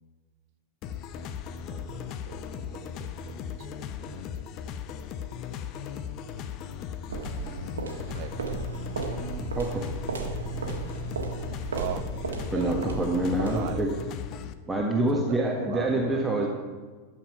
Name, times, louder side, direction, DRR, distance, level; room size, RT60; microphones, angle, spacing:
sound 1, 0.8-14.5, left 8 dB, 40° left, 0.7 m, -37 dB
voice 1, 1.7-3.7 4.0-4.5 8.1-8.4 11.7-12.1 12.5-13.0 13.4-13.8 15.1-16.5, right 10 dB, 45° right, 11 dB, 0.8 m, -40 dB
sound 2, 7.1-13.9, right 4 dB, 70° right, 1.6 m, -34 dB
voice 2, 12.5-13.9 14.7-16.5, right 1 dB, 10° right, -1 dB, 1.4 m, -26 dB
12.0 x 7.6 x 5.7 m, 1.4 s
figure-of-eight pair, 90°, 0 cm